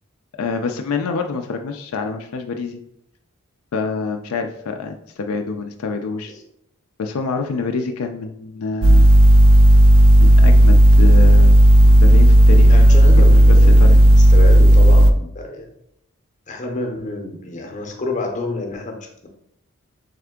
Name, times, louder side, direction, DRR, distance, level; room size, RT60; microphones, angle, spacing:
voice 1, 0.4-2.8 3.7-6.3 7.0-9.1 10.2-12.8 13.2-14.0, left 4 dB, 75° left, 5 dB, 0.4 m, -26 dB
sound 1, 8.8-15.1, right 1 dB, 65° right, 0.4 m, -10 dB
voice 2, 12.6-15.7 16.5-19.3, left 2 dB, 35° left, 3 dB, 0.7 m, -29 dB
3.6 x 3.3 x 3.6 m, 0.76 s
head